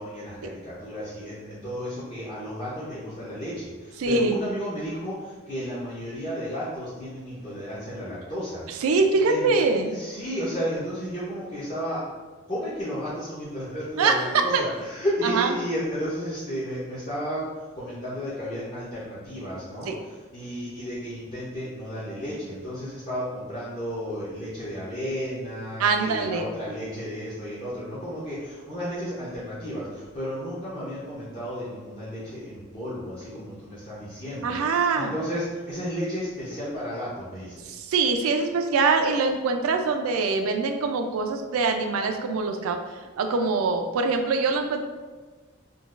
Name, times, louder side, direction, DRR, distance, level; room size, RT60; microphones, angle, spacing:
voice 1, 0.0-8.8 9.3-9.5 9.9-12.0 12.5-17.5 17.8-37.7, equal, 25° left, -11 dB, 0.6 m, -33 dB
voice 2, 4.0-4.4 8.8-9.9 14.0-14.6 15.2-15.5 19.9-20.0 25.8-26.5 34.4-35.1 37.7-42.8 43.2-44.8, right 4 dB, 90° right, 5 dB, 0.4 m, -23 dB
3.8 x 2.3 x 2.4 m, 1.4 s
head